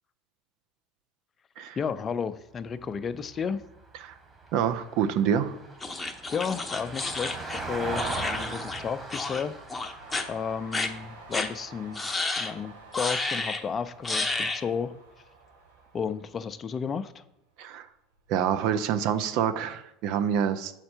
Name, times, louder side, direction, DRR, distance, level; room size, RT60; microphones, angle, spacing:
voice 1, 1.8-3.6 6.3-9.6 10.3-12.0 12.4-14.9 15.9-17.2, left 6 dB, 35° left, 12 dB, 0.4 m, -32 dB
Vehicle, 2.6-13.0 15.3-15.4, right 3 dB, 20° right, 1.6 m, -40 dB
voice 2, 4.5-5.6 17.6-17.9 18.3-20.7, right 8 dB, 65° right, 11 dB, 0.5 m, -26 dB
sound 1, 5.8-8.8 9.1-9.4 9.7-10.2 10.7-10.9 11.3-11.5 11.9-12.5 12.9-13.6 14.0-14.6, left 3 dB, 15° left, 0.8 m, -31 dB
Train, 10.0-17.4 17.8-18.6, right 3 dB, 90° right, 1.1 m, -51 dB
6.6 x 4.4 x 4.4 m, 0.85 s
hypercardioid pair, 90°, 0 cm